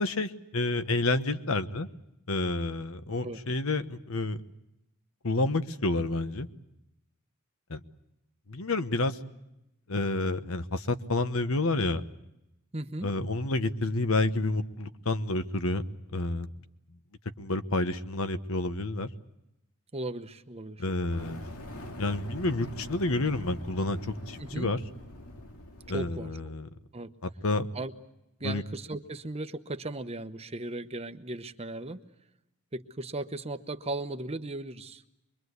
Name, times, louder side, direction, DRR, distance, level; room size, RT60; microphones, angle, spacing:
voice 1, 0.0-1.9 2.3-4.4 5.2-6.5 7.7-7.8 8.5-9.2 9.9-12.0 13.0-15.9 16.1-16.5 17.4-19.1 20.8-21.4 22.0-24.8 25.9-26.7 27.2-27.7 28.4-28.6, left 2 dB, 65° left, 10 dB, 1.2 m, -29 dB
voice 2, 12.7-13.1 19.9-20.8 24.4-24.7 25.9-26.3 26.9-27.1 27.7-27.9 28.4-32.0 32.7-35.0, right 2 dB, 30° right, 9 dB, 1.0 m, -36 dB
Fire, 21.0-26.2, left 1 dB, 85° left, 2.4 m, -43 dB
25.0 x 22.5 x 8.1 m, 0.87 s
head